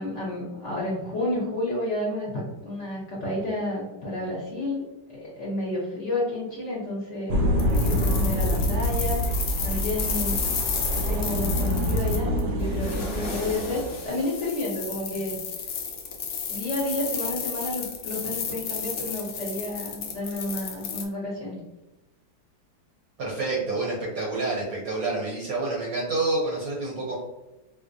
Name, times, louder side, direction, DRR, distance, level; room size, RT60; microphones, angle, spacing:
voice 1, 0.0-4.8 5.1-7.5 7.8-9.2 9.6-10.4 10.9-15.4 16.5-21.6, left 1 dB, 55° left, -5 dB, 0.9 m, -30 dB
sound 1, 7.3-13.9, equal, 80° right, 1.3 m, -26 dB
sound 2, 7.6-21.0, left 6 dB, 85° left, 0.6 m, -32 dB
voice 2, 23.2-27.2, right 3 dB, 60° right, -3 dB, 1.0 m, -28 dB
4.5 x 2.0 x 2.5 m, 1.0 s
omnidirectional pair, 2.0 m